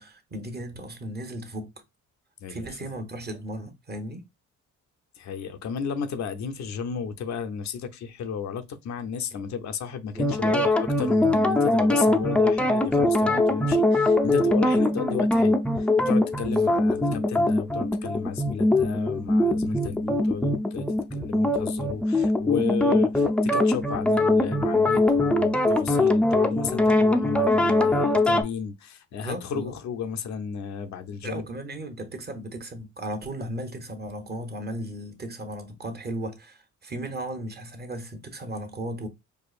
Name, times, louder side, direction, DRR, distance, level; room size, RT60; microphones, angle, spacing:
voice 1, 0.0-1.7 2.5-4.2 10.1-10.6 16.5-17.2 29.2-29.8 31.2-39.1, right 1 dB, 35° right, 1.1 m, -36 dB
voice 2, 2.4-2.9 5.2-31.5, left 6 dB, 65° left, 0.6 m, -33 dB
sound 1, 10.2-28.4, left 2 dB, 5° left, 0.5 m, -22 dB
4.7 x 2.3 x 2.4 m
cardioid pair, 90°, 30 cm